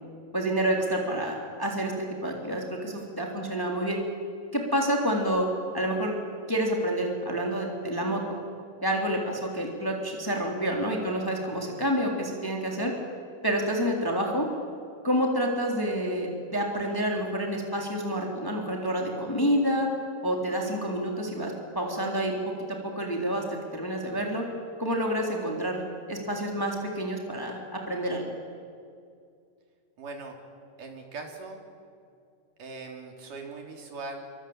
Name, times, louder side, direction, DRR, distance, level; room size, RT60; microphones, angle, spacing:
voice 1, 0.3-4.0 4.5-5.5 5.7-6.2 6.5-8.2 8.8-12.9 13.4-14.5 15.0-19.9 20.2-22.3 22.9-24.4 24.8-28.2, equal, 5° left, 1 dB, 3.1 m, -28 dB
voice 2, 30.0-30.4 30.8-31.6 32.6-34.3, right 3 dB, 75° right, 2 dB, 4.8 m, -40 dB
26.5 x 24.0 x 8.8 m, 2.3 s
omnidirectional pair, 3.7 m